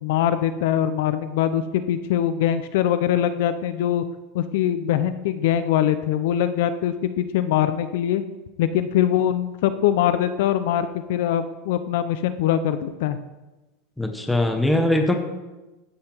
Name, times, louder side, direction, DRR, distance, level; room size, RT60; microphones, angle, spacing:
voice 1, 0.0-4.0 4.3-8.2 8.6-13.2, left 10 dB, 60° left, 11 dB, 0.5 m, -22 dB
voice 2, 14.0-15.1, left 1 dB, 5° left, 4 dB, 0.8 m, -21 dB
14.5 x 5.7 x 4.5 m, 1.1 s
supercardioid pair, 175°, 0 cm